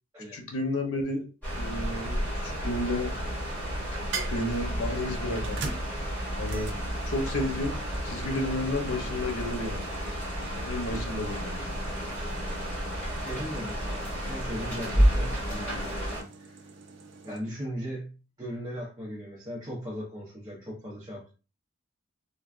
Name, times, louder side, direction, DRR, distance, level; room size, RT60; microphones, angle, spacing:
voice 1, 0.3-1.3 1.6-3.1 4.3-5.6 6.4-6.7 7.1-7.8 8.0-9.9 10.6-11.7, left 1 dB, 80° left, 2 dB, 0.8 m, -32 dB
sound 1, 1.4-16.2, equal, 10° left, 1.6 m, -31 dB
sound 2, 4.1-17.4, right 4 dB, 55° right, 0.5 m, -44 dB
voice 2, 13.1-16.7 17.2-21.3, equal, 20° right, -6 dB, 0.7 m, -38 dB
3.3 x 2.3 x 2.4 m, 0.34 s
head